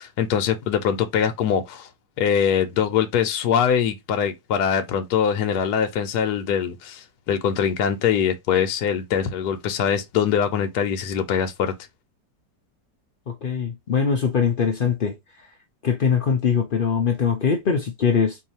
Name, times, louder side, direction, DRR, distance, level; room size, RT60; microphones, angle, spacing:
voice 1, 0.0-1.9 2.2-11.7, left 8 dB, 70° left, 1.2 m, -23 dB
voice 2, 13.3-15.2 15.8-18.4, left 6 dB, 85° left, 0.4 m, -22 dB
4.7 x 2.7 x 2.8 m
omnidirectional pair, 1.9 m